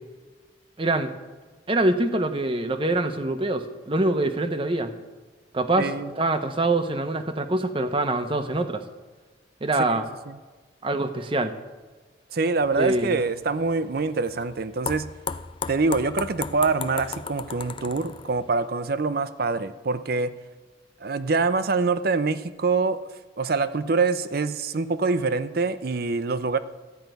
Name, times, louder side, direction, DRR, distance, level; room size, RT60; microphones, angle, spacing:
voice 1, 0.8-1.1 1.7-4.9 5.5-8.8 9.6-10.0 10.8-11.5 12.8-13.3, right 2 dB, 30° right, 8 dB, 0.8 m, -24 dB
voice 2, 5.8-6.1 9.9-10.3 12.3-15.1 15.7-20.3 21.0-23.0 23.4-26.6, right 4 dB, 55° right, 13 dB, 0.6 m, -25 dB
sound 1, 12.6-18.7, left 5 dB, 30° left, 0.4 m, -36 dB
13.5 x 5.5 x 9.2 m, 1.4 s
head